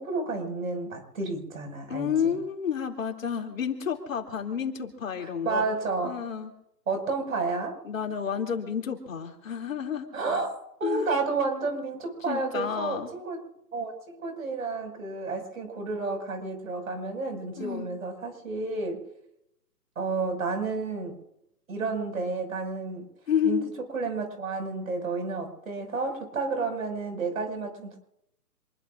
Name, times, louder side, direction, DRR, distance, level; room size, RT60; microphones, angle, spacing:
voice 1, 0.0-2.4 5.2-6.1 6.9-7.8 10.1-10.5 10.8-13.5 13.7-19.0 20.0-21.2 21.7-23.1 23.4-28.0, right 3 dB, 55° right, 4 dB, 5.9 m, -31 dB
voice 2, 1.9-5.7 6.0-6.5 7.8-10.1 10.8-11.1 12.3-13.1 17.6-17.9 23.3-23.7, left 7 dB, 55° left, 3 dB, 2.9 m, -30 dB
27.0 x 21.0 x 2.5 m, 0.80 s
figure-of-eight pair, 150°, 48 cm